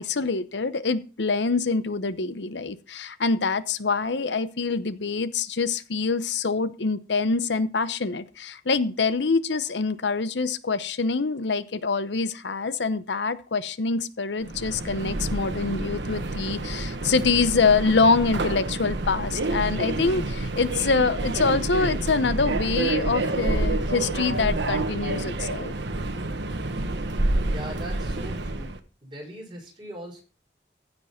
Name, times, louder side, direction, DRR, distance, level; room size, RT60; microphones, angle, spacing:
voice 1, 0.0-25.7, left 4 dB, 85° left, 13 dB, 0.8 m, -25 dB
Subway metro underground, 14.4-28.8, right 2 dB, 85° right, 1.3 m, -28 dB
voice 2, 27.5-28.7 29.0-30.2, right 1 dB, 25° right, -1 dB, 5.8 m, -40 dB
15.5 x 5.3 x 5.7 m, 0.36 s
head